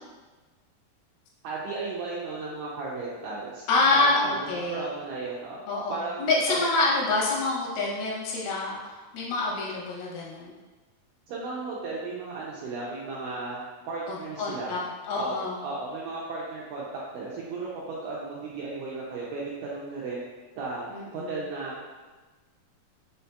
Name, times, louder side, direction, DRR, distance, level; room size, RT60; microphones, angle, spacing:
voice 1, 1.4-3.6 3.9-5.6 5.9-6.6 11.3-13.6 13.9-14.8 15.2-15.4 15.6-16.9 17.1-20.2 20.6-21.9, right 3 dB, 85° right, -6 dB, 1.8 m, -35 dB
voice 2, 3.7-4.8 5.7-10.5 14.1-15.6 20.9-21.4, left 3 dB, 90° left, -4 dB, 2.8 m, -27 dB
6.2 x 2.7 x 2.2 m, 1.3 s
omnidirectional pair, 4.2 m